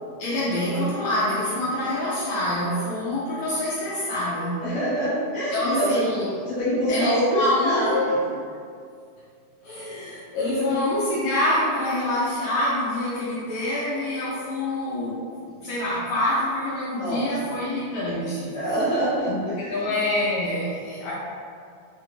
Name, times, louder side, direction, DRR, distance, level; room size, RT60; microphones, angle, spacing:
voice 1, 0.2-4.6 5.5-6.3 6.9-8.2 9.6-18.6 19.3-21.1, left 1 dB, 75° left, -8 dB, 1.7 m, -26 dB
voice 2, 4.6-5.9 6.4-8.2 10.5-10.8 17.0-17.3 18.5-19.5 19.8-20.0, equal, 50° left, -11 dB, 0.9 m, -25 dB
4.9 x 2.3 x 3.0 m, 2.3 s
omnidirectional pair, 3.6 m